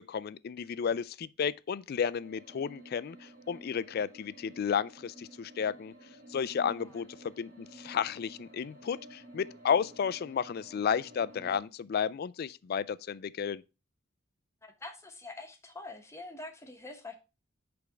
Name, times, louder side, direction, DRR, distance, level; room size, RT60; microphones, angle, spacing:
voice 1, 0.1-5.9 6.3-13.6, left 7 dB, 50° left, 0.3 m, -32 dB
sound 1, 2.2-11.6, right 1 dB, 45° right, 2.3 m, -52 dB
voice 2, 14.6-17.2, left 2 dB, 15° left, 1.1 m, -45 dB
8.3 x 3.5 x 4.9 m
head